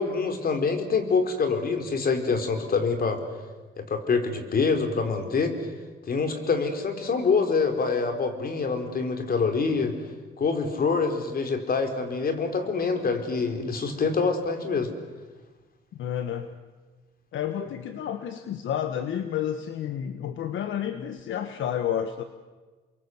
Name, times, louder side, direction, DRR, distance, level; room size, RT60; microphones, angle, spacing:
voice 1, 0.0-3.2 3.8-5.6 6.1-10.0 10.4-14.9, left 4 dB, 50° left, 6 dB, 4.5 m, -25 dB
voice 2, 15.9-16.5 17.3-22.2, left 9 dB, 75° left, 9 dB, 1.5 m, -30 dB
30.0 x 23.0 x 8.0 m, 1.3 s
cardioid pair, 90°, 20 cm